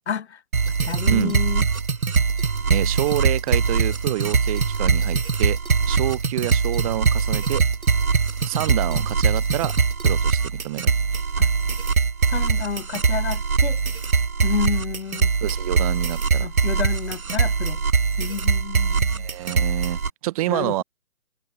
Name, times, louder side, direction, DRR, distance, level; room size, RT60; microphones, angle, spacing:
voice 1, 0.1-0.4 0.8-1.7 11.4-11.5 12.3-13.8 14.4-15.3 16.4-17.8 18.2-19.3 20.5-20.8, left 7 dB, 50° left, 2.5 m, -30 dB
sound 1, 0.5-20.1, right 5 dB, 70° right, 2.1 m, -22 dB
voice 2, 2.7-5.6 5.9-7.6 8.5-9.8 10.0-11.0 15.4-16.5 19.2-20.8, right 16 dB, 25° right, 2.6 m, -27 dB
figure-of-eight pair, 145°, 43 cm